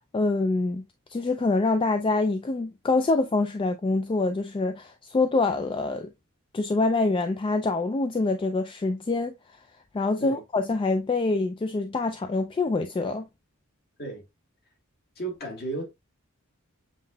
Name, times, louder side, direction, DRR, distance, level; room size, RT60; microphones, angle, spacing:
voice 1, 0.1-0.8 1.1-6.1 6.5-9.3 9.9-13.3, left 3 dB, 25° left, 0.3 m, -25 dB
voice 2, 15.2-15.8, right 2 dB, 50° left, 1.7 m, -33 dB
7.3 x 2.8 x 2.2 m
head